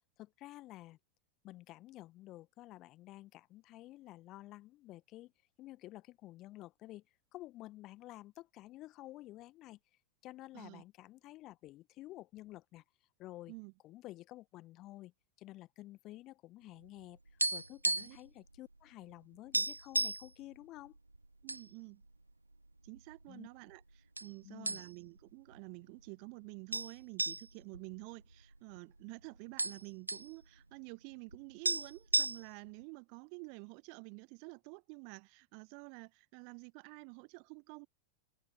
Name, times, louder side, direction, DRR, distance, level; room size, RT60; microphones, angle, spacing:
voice 1, 0.2-1.0 1.4-5.3 5.6-7.0 7.3-9.8 10.2-12.8 13.2-13.5 13.8-15.1 15.4-17.2 17.5-21.0 23.3-23.5 24.4-24.8, left 16 dB, 35° left, 1.3 m, -51 dB
sound 1, 16.8-18.3 18.5-18.7 19.1-19.2 19.5-20.3 21.0-21.6 22.0-22.1 22.8-23.5 24.2-24.3 24.7-25.2 25.5-25.6 26.7-28.8 29.1-29.2 29.4-30.3 31.3-31.4 31.6-32.7, right 2 dB, 85° right, 0.7 m, -34 dB
voice 2, 21.4-22.0 22.8-37.9, right 40 dB or more, 45° right, 1.0 m, -50 dB
figure-of-eight pair, 90°, 0 cm